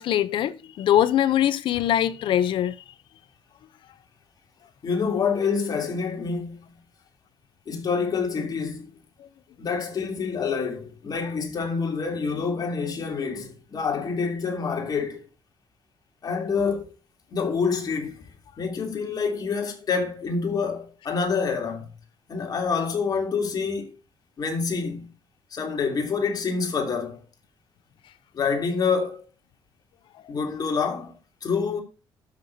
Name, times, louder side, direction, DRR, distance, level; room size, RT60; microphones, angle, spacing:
voice 1, 0.0-2.8, left 11 dB, 70° left, 0.7 m, -22 dB
voice 2, 4.8-6.8 7.7-8.9 9.6-15.3 16.2-16.9 17.3-18.3 18.6-21.9 22.3-23.9 24.4-25.1 25.5-27.2 28.3-29.2 30.3-31.8, left 5 dB, 45° left, 3.2 m, -27 dB
12.5 x 6.7 x 2.8 m
cardioid pair, 95°, 9 cm